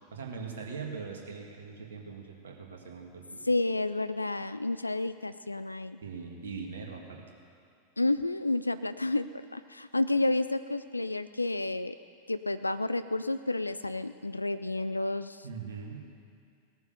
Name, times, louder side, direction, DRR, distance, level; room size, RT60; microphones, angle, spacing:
voice 1, 0.1-3.4 6.0-7.2 15.4-16.0, right 5 dB, 65° right, 1 dB, 2.1 m, -41 dB
voice 2, 3.5-6.0 8.0-12.0 12.3-15.4, left 2 dB, 85° left, 12 dB, 0.3 m, -30 dB
18.0 x 9.5 x 6.7 m, 2.3 s
figure-of-eight pair, 90°, 0 cm